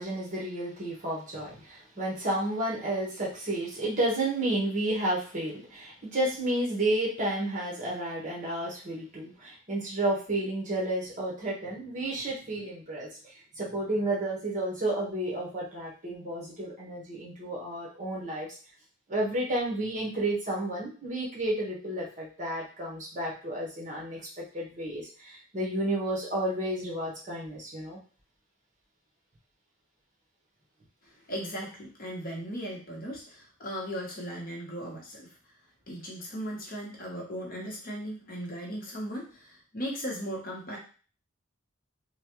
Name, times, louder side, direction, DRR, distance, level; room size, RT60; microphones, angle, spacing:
voice 1, 0.0-18.5 19.1-28.0, right 1 dB, 40° right, -4 dB, 1.2 m, -31 dB
voice 2, 31.3-35.3 35.9-40.8, equal, 45° left, -2 dB, 1.0 m, -37 dB
3.2 x 2.3 x 3.0 m, 0.39 s
head